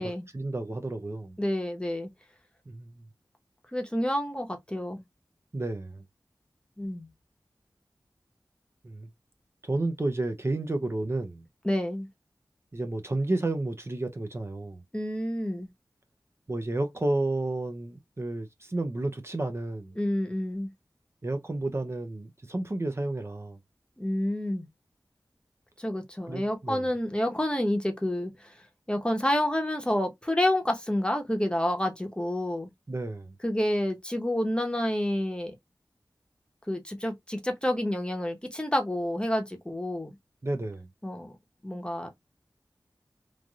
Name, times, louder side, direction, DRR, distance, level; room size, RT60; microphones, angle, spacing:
voice 1, 0.3-1.4 2.7-3.0 5.5-6.0 8.8-9.1 9.6-11.4 12.7-14.8 16.5-20.0 21.2-23.6 26.3-26.9 32.9-33.3 40.4-40.9, right 2 dB, 35° right, 0.5 m, -31 dB
voice 2, 1.4-2.1 3.7-5.0 6.8-7.1 11.6-12.1 14.9-15.7 20.0-20.7 24.0-24.6 25.8-28.5 28.9-32.7 33.4-35.5 36.7-40.1 41.0-41.3 41.6-42.1, left 1 dB, 15° left, 0.9 m, -29 dB
3.1 x 2.6 x 2.3 m
wide cardioid pair, 65°, 8 cm